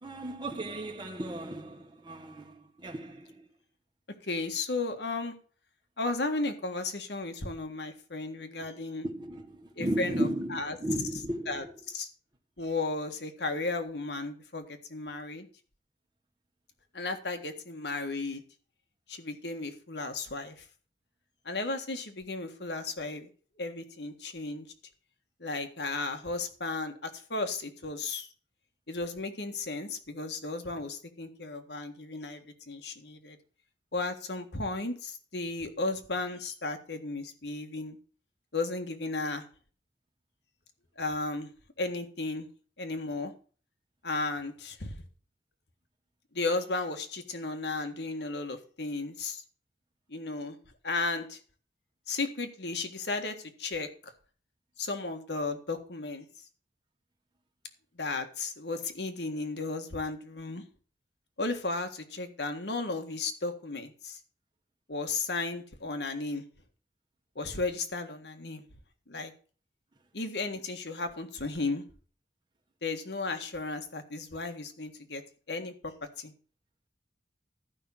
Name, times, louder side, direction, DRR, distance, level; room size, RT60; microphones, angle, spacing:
voice 1, 0.0-3.5 8.6-8.7 9.0-11.8, right 1 dB, 25° right, 1.3 m, -35 dB
voice 2, 4.2-5.4 6.0-9.1 9.8-10.8 11.5-12.1 12.6-14.6 14.9-15.5 16.9-18.4 19.1-20.6 21.5-23.3 23.6-24.7 25.4-28.3 28.9-33.4 33.9-38.0 38.5-39.4 41.0-41.5 41.8-42.5 42.8-43.3 44.0-45.0 46.3-49.4 50.1-50.6 50.8-51.4 52.1-54.1 54.8-56.3 58.0-60.6 61.4-64.2 64.9-66.4 67.4-68.6 69.1-69.3 70.1-71.8 72.8-75.2 75.5-76.3, left 3 dB, 70° left, 1.7 m, -34 dB
13.0 x 5.7 x 7.1 m
head